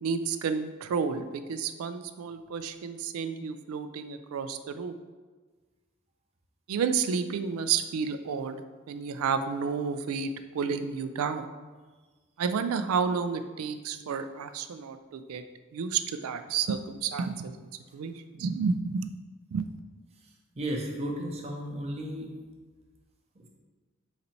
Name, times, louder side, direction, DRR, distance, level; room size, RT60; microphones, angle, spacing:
voice 1, 0.0-4.9 6.7-11.5 12.4-15.4 15.7-19.1 19.5-19.6, right 6 dB, 85° right, 9 dB, 0.3 m, -31 dB
voice 2, 20.6-22.3 23.4-23.5, right 1 dB, 30° right, 0 dB, 0.6 m, -34 dB
4.1 x 2.7 x 4.3 m, 1.4 s
head